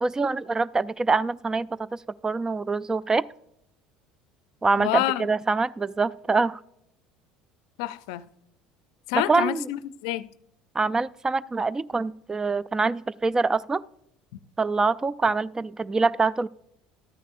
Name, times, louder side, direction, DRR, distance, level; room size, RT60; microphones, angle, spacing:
voice 1, 0.0-3.3 4.6-6.6 9.1-9.6 10.8-13.8 14.6-16.5, right 3 dB, 20° right, 0.3 m, -25 dB
voice 2, 4.8-5.3 7.8-8.2 9.1-10.3, left 15 dB, 70° left, 0.4 m, -28 dB
13.0 x 9.9 x 2.5 m
hypercardioid pair, 70°, 3 cm